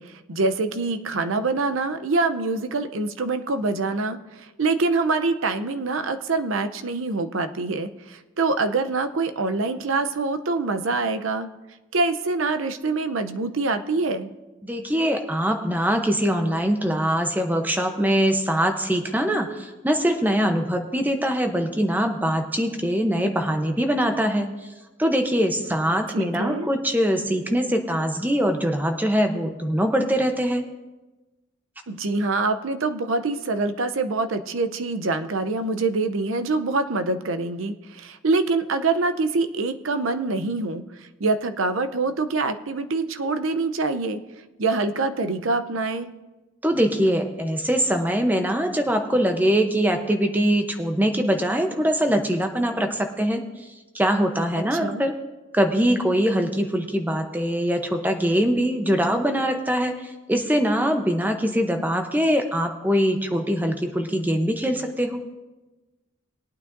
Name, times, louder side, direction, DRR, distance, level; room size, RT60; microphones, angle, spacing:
voice 1, 0.0-11.5 11.9-14.3 26.1-26.7 31.9-40.8 41.2-44.2 44.6-46.1 54.6-55.1, right 3 dB, 85° right, 9 dB, 0.7 m, -25 dB
voice 2, 14.6-24.5 25.0-30.6 46.6-53.4 53.9-55.1 55.5-65.2, equal, 10° right, 5 dB, 0.7 m, -23 dB
20.0 x 9.0 x 2.6 m, 1.1 s
head